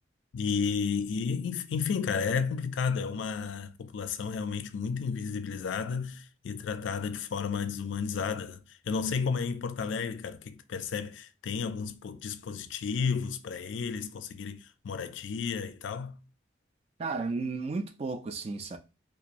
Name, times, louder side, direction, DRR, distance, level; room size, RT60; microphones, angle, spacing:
voice 1, 0.3-16.2, left 5 dB, 85° left, 0.4 m, -32 dB
voice 2, 17.0-18.8, right 3 dB, 35° right, 0.3 m, -33 dB
2.9 x 2.3 x 2.5 m
head